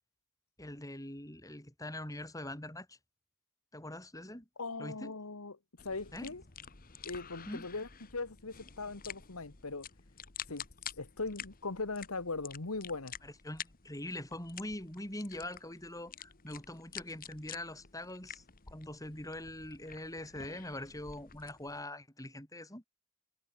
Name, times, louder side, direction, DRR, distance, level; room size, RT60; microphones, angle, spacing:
voice 1, 0.6-3.0 3.7-4.5 4.8-5.1 6.1-6.3 7.5-7.7 13.2-22.8, left 1 dB, 15° left, 4.8 m, -43 dB
voice 2, 4.6-5.6 5.8-6.4 7.0-9.9 10.5-10.7 11.0-13.1, left 3 dB, 75° left, 1.6 m, -39 dB
sound 1, 5.8-21.8, left 8 dB, 40° left, 1.6 m, -50 dB
head